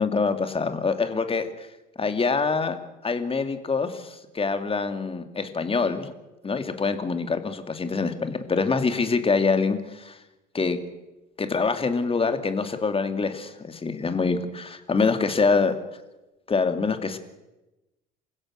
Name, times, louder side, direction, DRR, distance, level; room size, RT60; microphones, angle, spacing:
voice 1, 0.0-1.7 2.0-2.8 3.0-6.1 6.4-10.2 10.5-10.8 11.4-15.7 16.5-17.2, left 4 dB, 25° left, 8 dB, 2.7 m, -25 dB
28.0 x 16.0 x 6.6 m, 1.0 s
hypercardioid pair, 60°, 21 cm